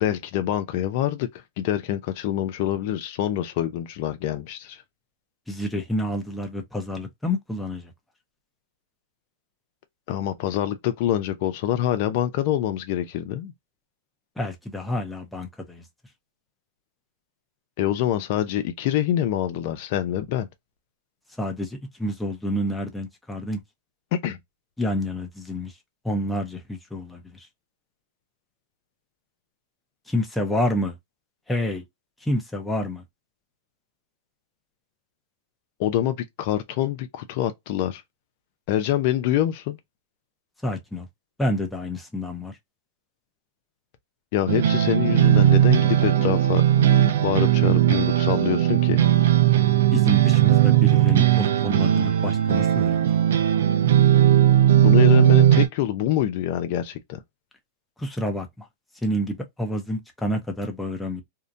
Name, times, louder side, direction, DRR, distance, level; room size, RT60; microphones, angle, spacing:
voice 1, 0.0-1.3 1.6-4.8 10.1-13.5 17.8-20.5 24.1-24.4 35.8-38.0 38.7-39.8 44.3-46.9 47.2-49.0 54.8-57.2, left 12 dB, 55° left, 0.5 m, -25 dB
voice 2, 5.5-7.9 14.4-15.9 21.4-23.6 24.8-25.7 26.0-27.5 30.1-31.0 31.5-31.8 32.2-33.0 40.6-41.1 41.4-42.5 49.9-53.1 58.0-58.7 59.0-61.2, left 1 dB, 5° left, 0.7 m, -28 dB
sound 1, 44.5-55.7, right 11 dB, 80° right, 0.5 m, -18 dB
2.7 x 2.1 x 2.4 m
hypercardioid pair, 125°, 0 cm